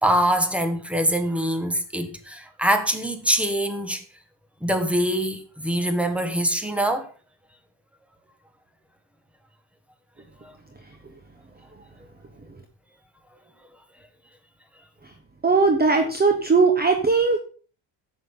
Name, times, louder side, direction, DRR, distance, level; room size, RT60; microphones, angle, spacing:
voice 1, 0.0-4.0 4.6-7.1 10.4-10.5, equal, 5° right, 1.6 m, -24 dB
voice 2, 15.4-17.4, right 4 dB, 20° right, 1.2 m, -19 dB
11.0 x 7.7 x 5.5 m
cardioid pair, 140°, 46 cm